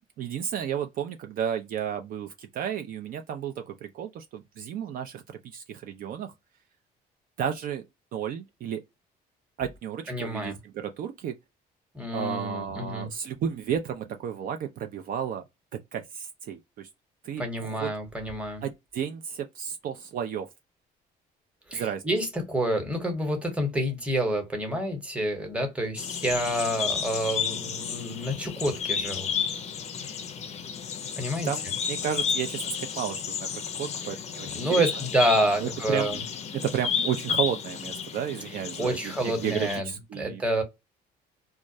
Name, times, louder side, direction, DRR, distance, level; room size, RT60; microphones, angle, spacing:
voice 1, 0.2-6.3 7.4-7.8 8.1-8.8 9.6-11.4 12.1-15.4 15.7-16.9 17.2-17.9 18.6-20.5 21.7-22.0 31.4-34.9 35.6-36.2 36.5-40.4, right 8 dB, 55° right, 0.4 m, -32 dB
voice 2, 10.1-10.6 11.9-13.1 17.4-18.6 21.7-29.3 31.2-31.5 34.4-36.2 38.8-40.6, right 1 dB, 5° right, 0.9 m, -28 dB
sound 1, 25.9-39.8, left 7 dB, 40° left, 0.5 m, -32 dB
2.3 x 2.0 x 2.6 m
cardioid pair, 110°, 17 cm